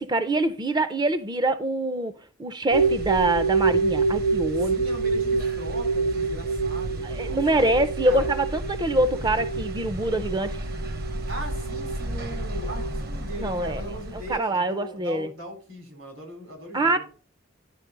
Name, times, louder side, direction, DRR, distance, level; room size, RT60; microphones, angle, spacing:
voice 1, 0.0-2.1 2.4-4.8 7.0-10.6 13.4-13.8 14.3-15.3 16.7-17.0, right 2 dB, 20° right, 0.4 m, -25 dB
sound 1, 2.7-14.3, right 3 dB, 50° right, 0.9 m, -27 dB
voice 2, 4.6-7.6 8.0-8.3 11.3-17.0, right 1 dB, 75° right, 3.9 m, -39 dB
10.5 x 5.2 x 3.7 m
head